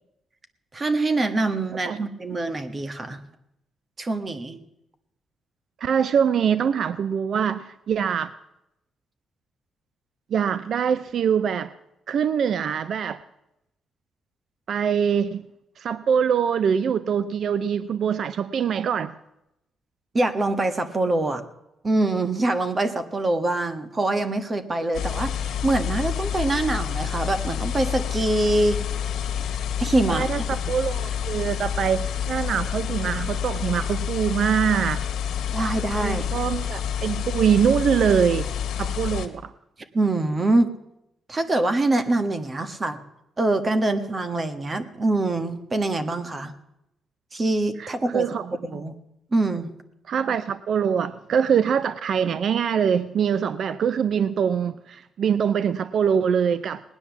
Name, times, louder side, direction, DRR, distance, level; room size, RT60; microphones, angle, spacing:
voice 1, 0.7-3.2 4.0-4.6 20.1-21.4 21.8-28.8 29.8-30.4 35.5-36.2 39.9-40.7 41.3-43.0 43.4-46.5 47.3-48.3 48.6-49.0 49.3-49.7, right 2 dB, 30° right, 8 dB, 1.4 m, -24 dB
voice 2, 5.8-8.3 10.3-11.7 12.1-13.2 14.7-15.5 15.8-19.1 30.1-35.0 36.0-39.5 47.8-48.8 50.1-56.8, right 7 dB, 65° right, 15 dB, 0.5 m, -24 dB
sound 1, 24.9-39.3, left 8 dB, 80° left, 1.5 m, -28 dB
18.5 x 9.8 x 7.1 m, 0.86 s
cardioid pair, 90°, 0 cm